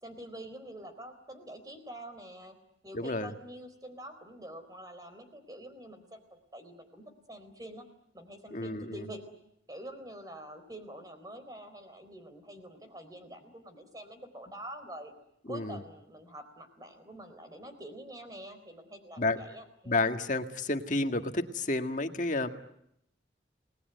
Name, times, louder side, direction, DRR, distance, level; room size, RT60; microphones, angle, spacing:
voice 1, 0.0-2.6 2.8-6.2 6.5-7.9 8.1-9.3 9.7-15.1 15.5-20.0, right 1 dB, 20° right, 8 dB, 4.1 m, -46 dB
voice 2, 2.9-3.3 8.5-9.0 15.5-15.8 19.2-19.4 19.9-22.5, left 2 dB, 45° left, 6 dB, 1.8 m, -30 dB
29.5 x 20.0 x 9.4 m, 0.78 s
head